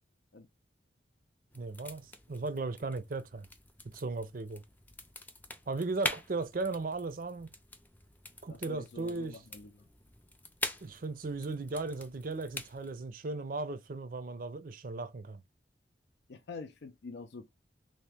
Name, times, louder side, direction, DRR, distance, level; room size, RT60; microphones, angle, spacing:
sound 1, 1.5-12.9, left 2 dB, 10° left, 0.4 m, -44 dB
voice 1, 1.5-3.5 3.9-4.6 5.7-7.5 8.4-9.4 10.8-15.4, right 3 dB, 50° right, 0.5 m, -36 dB
voice 2, 8.5-9.9 16.3-17.5, left 4 dB, 65° left, 0.5 m, -46 dB
3.2 x 2.8 x 3.4 m
head